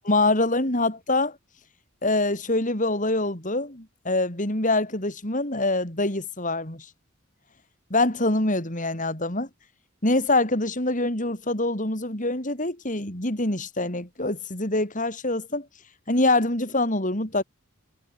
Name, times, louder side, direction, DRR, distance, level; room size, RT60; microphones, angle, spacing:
voice 1, 0.1-1.4 2.0-6.9 7.9-9.5 10.0-15.7 16.1-17.4, left 2 dB, 35° left, 5.3 m, -25 dB
head